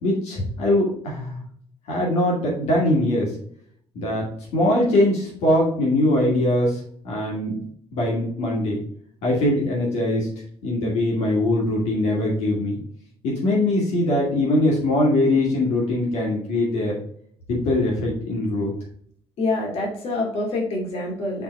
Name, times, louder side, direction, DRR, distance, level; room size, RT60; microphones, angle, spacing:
voice 1, 0.0-1.4 1.9-3.3 3.9-4.3 4.5-7.6 7.9-8.8 9.2-10.3 10.6-12.8 13.2-17.0 17.5-18.7, left 1 dB, 80° left, -3 dB, 2.4 m, -22 dB
voice 2, 19.4-21.4, left 2 dB, 65° left, -1 dB, 2.6 m, -26 dB
6.0 x 4.0 x 4.1 m, 0.62 s
cardioid pair, 110°, 11 cm